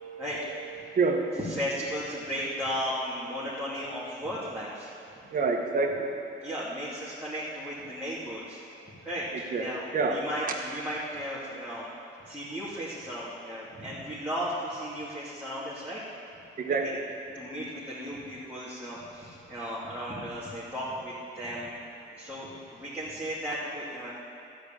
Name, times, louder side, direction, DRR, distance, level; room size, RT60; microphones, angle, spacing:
voice 1, 0.0-1.4 5.1-6.5 8.6-10.3 12.2-12.4 13.7-13.8 16.5-17.0 17.4-17.5 19.4-19.5 22.0-22.3, right 4 dB, 45° right, 1 dB, 1.4 m, -30 dB
voice 2, 1.5-4.9 6.4-8.6 9.0-9.3 9.6-9.8 10.1-11.9 12.3-16.0 16.7-16.8 17.3-21.7 22.2-24.1, equal, 5° right, -10 dB, 2.5 m, -35 dB
13.5 x 4.9 x 8.9 m, 2.6 s
cardioid pair, 90°, 20 cm